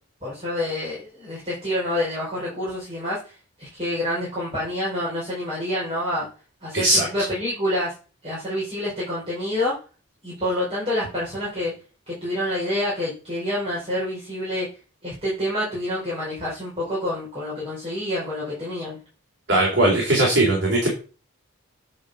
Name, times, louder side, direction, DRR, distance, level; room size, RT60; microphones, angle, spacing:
voice 1, 0.2-6.3 6.6-6.9 7.1-7.9 8.2-9.7 10.2-11.7 12.1-14.7 15.0-19.0, left 1 dB, 25° right, -8 dB, 5.1 m, -27 dB
voice 2, 6.7-7.1 19.5-20.9, right 2 dB, 50° right, -1 dB, 3.6 m, -19 dB
9.3 x 5.1 x 6.8 m, 0.35 s
head